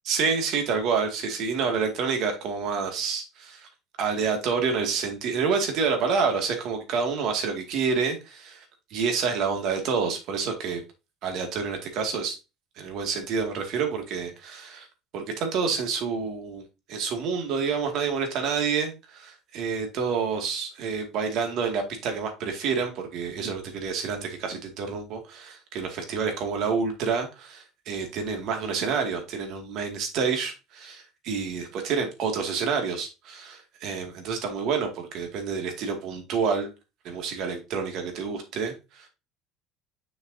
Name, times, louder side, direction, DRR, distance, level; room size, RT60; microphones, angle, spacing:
voice 1, 0.1-3.7 4.0-8.7 8.9-10.8 11.2-12.4 12.8-14.9 15.1-36.7 37.0-39.1, right 5 dB, 55° right, 4 dB, 2.1 m, -28 dB
6.5 x 6.4 x 2.7 m, 0.27 s
cardioid pair, 145°, 0 cm